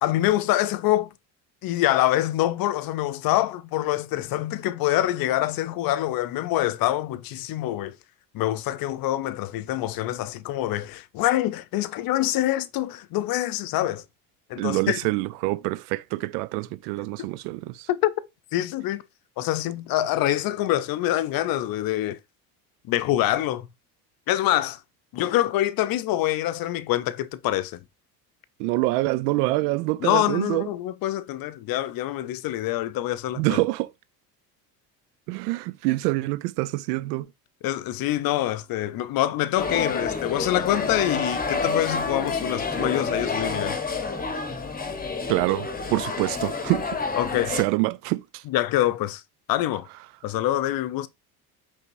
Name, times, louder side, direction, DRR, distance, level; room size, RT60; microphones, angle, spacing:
voice 1, 0.0-1.1 1.6-8.0 8.3-14.0 14.5-15.0 17.9-18.2 18.5-19.0 19.4-22.2 22.8-23.7 24.3-24.8 25.1-27.8 30.0-33.6 37.6-43.8 47.2-47.6 48.5-49.2 49.5-49.9 50.2-51.1, left 14 dB, 50° left, 0.6 m, -25 dB
voice 2, 14.6-17.9 28.6-30.7 33.4-33.9 35.3-37.3 45.3-47.0 47.5-48.4, right 20 dB, 80° right, 0.5 m, -26 dB
sound 1, 39.6-47.6, left 4 dB, 20° left, 1.0 m, -29 dB
5.3 x 3.5 x 2.6 m
hypercardioid pair, 80°, 46 cm